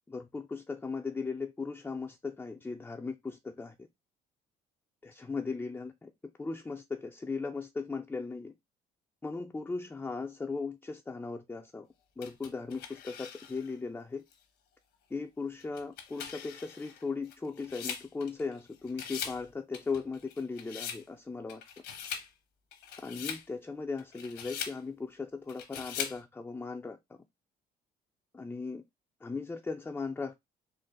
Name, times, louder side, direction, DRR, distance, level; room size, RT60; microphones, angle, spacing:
voice 1, 0.1-3.7 5.0-6.1 6.4-8.5 9.2-11.9 12.2-14.2 15.1-21.6 23.0-27.2 28.3-28.8 29.2-30.3, left 4 dB, 10° left, 0.4 m, -37 dB
sound 1, 12.2-13.7 14.3-14.4 15.6-18.6 18.9-19.4 19.7-21.0 21.5-22.3 22.7-23.4 24.0-24.8 25.5-26.2, left 8 dB, 75° left, 1.1 m, -41 dB
4.0 x 2.4 x 3.7 m
cardioid pair, 110°, 17 cm